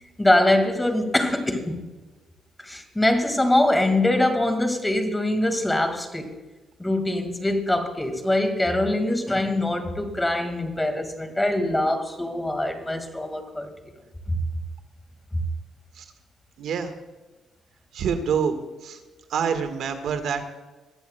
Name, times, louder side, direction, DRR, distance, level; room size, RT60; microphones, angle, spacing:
voice 1, 0.2-1.8 2.6-6.3 6.8-13.7 14.3-14.4 15.3-15.4, left 1 dB, 10° left, 7 dB, 1.8 m, -23 dB
voice 2, 16.6-16.9 17.9-18.6 18.8-19.0 19.3-20.5, right 6 dB, 75° right, 7 dB, 1.4 m, -26 dB
21.0 x 14.5 x 2.2 m, 1.2 s
cardioid pair, 90°, 0 cm